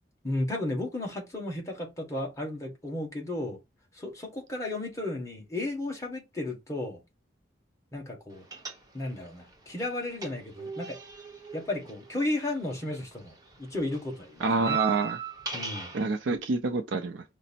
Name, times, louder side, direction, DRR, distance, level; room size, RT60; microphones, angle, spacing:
voice 1, 0.2-3.6 3.9-7.0 7.9-8.5 8.9-11.0 11.5-14.8 15.5-15.9, left 2 dB, 15° left, 1.4 m, -34 dB
sound 1, 8.5-9.3 9.5-12.9 13.2-16.1, right 7 dB, 20° right, 0.9 m, -37 dB
voice 2, 14.4-15.2 15.9-17.2, right 3 dB, 80° right, 0.5 m, -27 dB
5.2 x 2.0 x 4.2 m
head